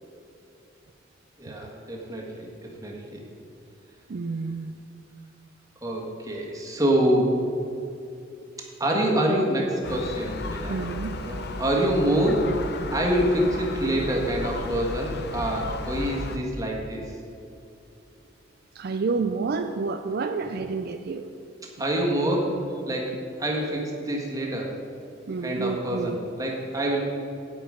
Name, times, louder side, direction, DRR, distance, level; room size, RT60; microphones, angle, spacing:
voice 1, 1.4-3.2 5.8-7.4 8.8-10.9 11.3-12.6 12.9-17.2 21.8-24.8 25.4-27.0, right 1 dB, 20° right, -2 dB, 1.6 m, -26 dB
voice 2, 4.1-4.7 10.7-11.1 18.7-21.2 25.3-26.2, right 4 dB, 55° right, 7 dB, 0.4 m, -29 dB
Gull seagull, 9.8-16.4, left 2 dB, 60° left, 0.7 m, -34 dB
9.0 x 8.9 x 5.1 m, 2.7 s
head